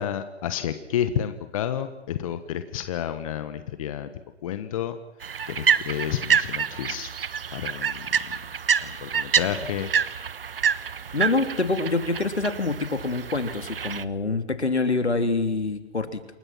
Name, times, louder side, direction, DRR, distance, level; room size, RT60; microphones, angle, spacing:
voice 1, 0.0-4.1 4.4-5.0 5.5-7.1 7.5-8.4 8.8-9.9, left 10 dB, 30° left, 11 dB, 1.4 m, -30 dB
sound 1, 5.2-14.0, right 7 dB, 55° right, 1.2 m, -27 dB
voice 2, 11.1-16.2, left 3 dB, 75° left, 8 dB, 3.3 m, -26 dB
28.5 x 22.0 x 6.0 m, 0.93 s
figure-of-eight pair, 130°, 33 cm